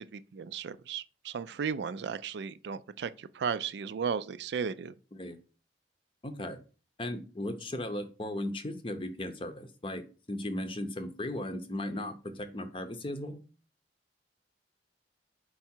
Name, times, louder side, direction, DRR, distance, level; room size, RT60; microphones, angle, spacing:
voice 1, 0.0-4.9, right 6 dB, 70° right, 0.3 m, -35 dB
voice 2, 6.2-6.6 7.0-10.0 10.3-13.4, left 1 dB, 30° left, 0.7 m, -36 dB
4.7 x 4.5 x 4.4 m
head